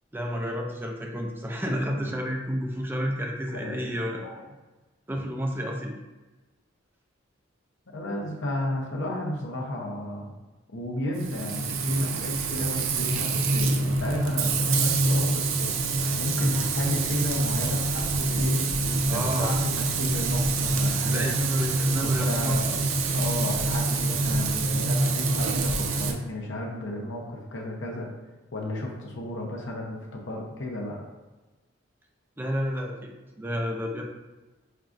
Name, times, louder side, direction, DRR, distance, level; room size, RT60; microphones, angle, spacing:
voice 1, 0.1-4.2 5.1-5.9 19.1-19.5 21.1-22.8 32.4-34.0, equal, 10° right, 0 dB, 0.3 m, -30 dB
voice 2, 1.7-2.1 3.5-4.4 7.9-10.3 10.7-15.9 16.2-21.3 22.0-22.7 23.1-28.1 28.5-31.0, left 1 dB, 65° left, -1 dB, 0.7 m, -33 dB
Frying (food), 11.1-26.1, right 3 dB, 80° right, 0.5 m, -25 dB
5.4 x 2.4 x 2.5 m, 1.1 s
head